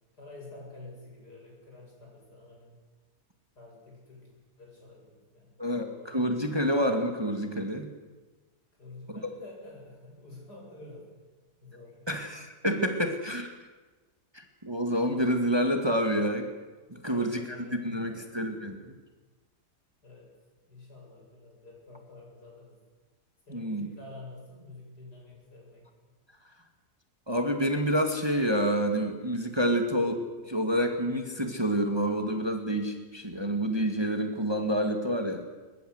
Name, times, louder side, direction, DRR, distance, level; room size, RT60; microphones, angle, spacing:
voice 1, 0.2-2.8 3.6-4.3 4.6-6.4 8.8-11.1 11.6-12.4 17.1-18.6 20.0-20.3 20.7-22.8 23.5-25.9, left 2 dB, 80° left, -2 dB, 8.6 m, -49 dB
voice 2, 5.6-7.9 12.1-13.5 14.3-16.5 16.9-18.9 23.5-23.9 27.3-35.4, equal, 15° right, 5 dB, 2.1 m, -28 dB
22.0 x 21.5 x 8.1 m, 1.3 s
omnidirectional pair, 1.7 m